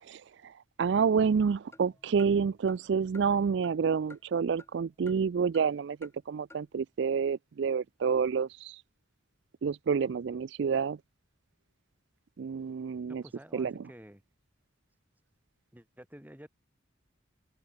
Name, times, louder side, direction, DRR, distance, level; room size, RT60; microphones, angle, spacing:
voice 1, 0.0-8.8 9.6-11.0 12.4-13.2 13.5-13.7, right 6 dB, 60° right, 0.4 m, -29 dB
sound 1, 1.7-4.8 5.1-5.7 6.0-6.2 6.5-6.6, left 2 dB, 15° left, 1.7 m, -55 dB
voice 2, 13.1-14.2 15.7-16.5, equal, 10° right, 3.4 m, -50 dB
head